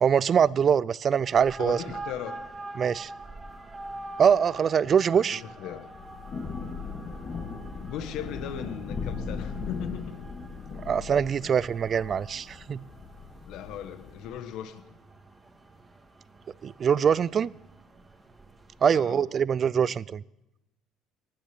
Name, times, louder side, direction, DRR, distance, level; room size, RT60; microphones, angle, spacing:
voice 1, 0.0-1.8 2.8-3.1 4.2-5.4 10.9-12.8 16.6-17.5 18.8-20.2, right 7 dB, 45° right, 0.4 m, -23 dB
sound 1, 1.2-19.1, right 2 dB, 20° right, 1.7 m, -46 dB
voice 2, 1.6-2.4 5.1-5.9 7.8-10.2 11.4-11.5 13.5-14.8 18.9-19.2, left 10 dB, 70° left, 1.3 m, -38 dB
Thunder / Rain, 5.7-14.3, left 4 dB, 40° left, 2.2 m, -38 dB
19.5 x 7.0 x 7.6 m
supercardioid pair, 85°, 0 cm